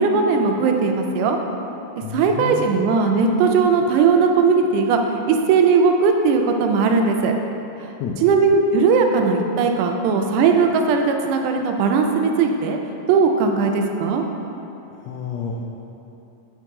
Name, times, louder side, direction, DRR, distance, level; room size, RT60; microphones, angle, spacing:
voice 1, 0.0-1.4 2.1-5.0 5.3-7.3 7.8-7.9 8.2-12.8 13.1-14.2, right 5 dB, 85° right, 3 dB, 2.0 m, -18 dB
voice 2, 2.0-2.8 8.0-8.2 14.9-15.5, left 7 dB, 85° left, -1 dB, 1.5 m, -30 dB
7.6 x 4.6 x 3.6 m, 3.0 s
omnidirectional pair, 3.7 m